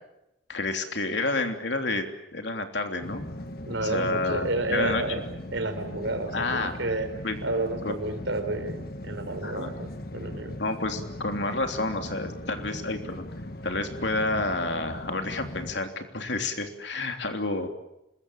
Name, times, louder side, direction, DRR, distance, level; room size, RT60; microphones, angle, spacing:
voice 1, 0.5-2.1 2.3-3.2 3.8-5.0 6.3-6.7 7.2-7.4 7.8-7.9 9.4-9.7 10.6-13.3 13.6-17.7, left 2 dB, 70° left, 5 dB, 3.2 m, -29 dB
sound 1, 3.0-15.8, left 1 dB, 55° left, 1.5 m, -39 dB
voice 2, 3.6-5.2 5.5-7.1 7.4-10.6, right 2 dB, 80° right, 7 dB, 4.5 m, -31 dB
26.0 x 21.5 x 8.8 m, 0.89 s
head